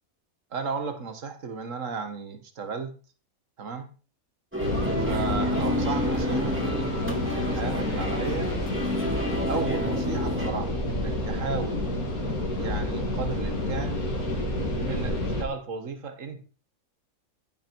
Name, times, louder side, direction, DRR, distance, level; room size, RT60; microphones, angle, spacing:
voice 1, 0.5-2.9 3.6-3.9 5.0-8.5 9.5-11.9 12.6-14.0 14.9-16.5, right 5 dB, 60° right, 8 dB, 2.0 m, -34 dB
sound 1, 4.5-10.5, left 1 dB, 10° right, 2.7 m, -30 dB
sound 2, 4.6-15.4, left 1 dB, 80° left, 3.4 m, -29 dB
15.0 x 7.1 x 4.7 m, 0.37 s
omnidirectional pair, 1.5 m